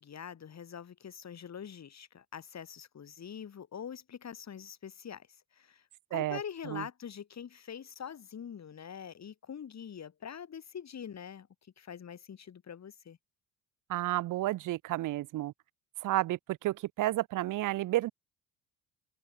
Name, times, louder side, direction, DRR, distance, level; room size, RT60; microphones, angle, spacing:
voice 1, 0.0-5.3 5.5-11.5 11.8-13.2, left 8 dB, 40° left, 4.5 m, -44 dB
voice 2, 13.9-15.5 16.0-18.1, right 15 dB, 50° right, 0.9 m, -31 dB
open air
hypercardioid pair, 60°, 41 cm